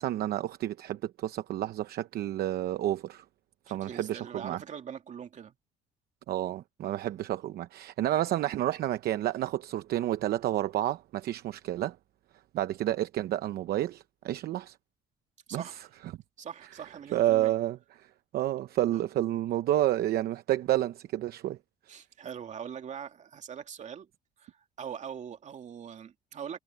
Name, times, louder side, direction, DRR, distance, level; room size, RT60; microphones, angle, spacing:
voice 1, 0.0-3.2 3.7-4.6 6.3-12.0 12.5-14.8 15.5-15.9 17.1-21.6, right 13 dB, 65° right, 0.8 m, -30 dB
voice 2, 3.7-5.6 7.0-7.2 15.5-15.8 16.4-17.5 21.9-24.1 24.4-26.6, right 8 dB, 45° right, 2.6 m, -42 dB
cardioid pair, 110°, 17 cm